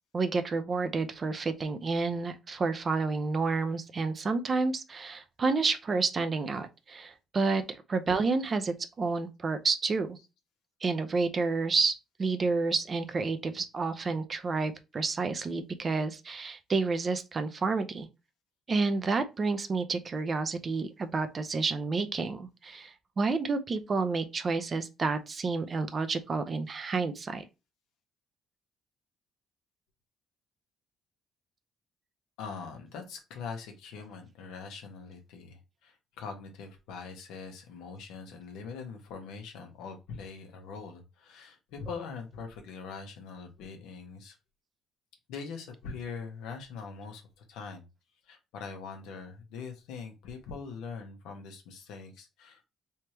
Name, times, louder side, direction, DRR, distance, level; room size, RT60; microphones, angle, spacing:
voice 1, 0.1-10.2 10.8-18.1 18.7-27.4, right 4 dB, 40° right, 0.6 m, -30 dB
voice 2, 32.4-44.3 45.3-47.9 48.2-52.7, left 5 dB, 85° left, 1.0 m, -42 dB
3.4 x 3.1 x 2.9 m
supercardioid pair, 80°, 0 cm